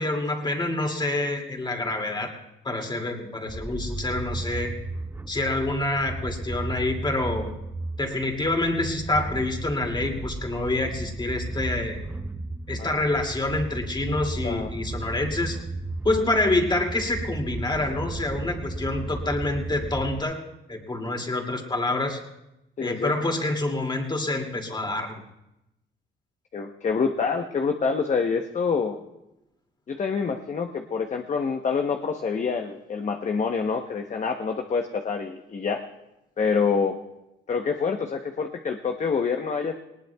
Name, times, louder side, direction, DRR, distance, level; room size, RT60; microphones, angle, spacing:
voice 1, 0.0-2.3 2.6-4.7 5.3-7.5 8.0-12.0 12.7-15.6 16.0-20.4 20.7-22.2 22.8-25.2, left 2 dB, 20° left, 3 dB, 2.4 m, -27 dB
sound 1, 3.5-20.2, right 2 dB, 10° right, 0.5 m, -34 dB
voice 2, 14.4-14.7 22.8-23.1 26.5-29.0 29.9-35.8 36.4-37.0 37.5-39.7, left 5 dB, 35° left, 4 dB, 0.9 m, -26 dB
20.0 x 19.0 x 2.3 m, 0.91 s
cardioid pair, 90°, 20 cm